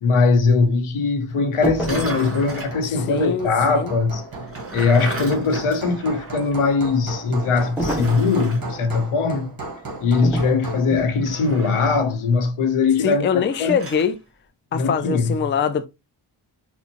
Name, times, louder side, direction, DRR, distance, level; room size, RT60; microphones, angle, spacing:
voice 1, 0.0-4.2 4.7-9.6 10.0-13.8 14.7-15.3, left 4 dB, 85° left, 0.8 m, -20 dB
Hammer, 1.3-11.0, right 3 dB, 45° right, 1.2 m, -36 dB
sound 1, 1.6-2.2 7.8-8.3 10.2-10.5 10.9-11.2, right 1 dB, 5° right, 1.4 m, -26 dB
sound 2, 1.7-2.8 4.3-6.6 6.9-7.0 7.8-8.6 11.1-12.1 13.5-14.1, right 2 dB, 30° right, 1.3 m, -33 dB
voice 2, 2.9-3.9 13.0-14.2 14.7-15.9, left 7 dB, 25° left, 0.3 m, -23 dB
4.3 x 2.1 x 2.9 m
cardioid pair, 70°, 49 cm